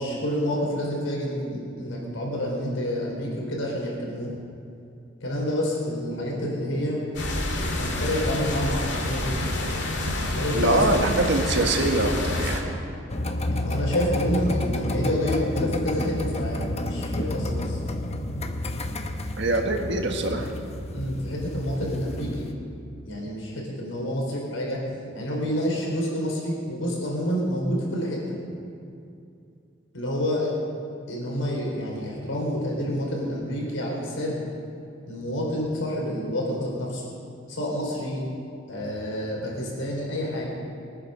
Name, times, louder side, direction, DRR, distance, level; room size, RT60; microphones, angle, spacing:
voice 1, 0.0-4.3 5.2-7.0 7.7-9.3 10.3-11.1 13.6-17.8 20.9-22.5 23.0-24.8 25.1-28.4 29.9-30.5 31.1-34.5 35.1-37.0 37.5-38.3 38.7-40.6, equal, 90° left, -3 dB, 4.5 m, -28 dB
sound 1, 7.1-12.6, left 1 dB, 65° left, 2.2 m, -28 dB
voice 2, 10.5-12.6 19.4-20.5, right 2 dB, 65° right, 3 dB, 1.5 m, -23 dB
sound 2, 13.1-22.5, left 1 dB, 35° left, 0.9 m, -30 dB
22.5 x 9.6 x 6.6 m, 2.5 s
head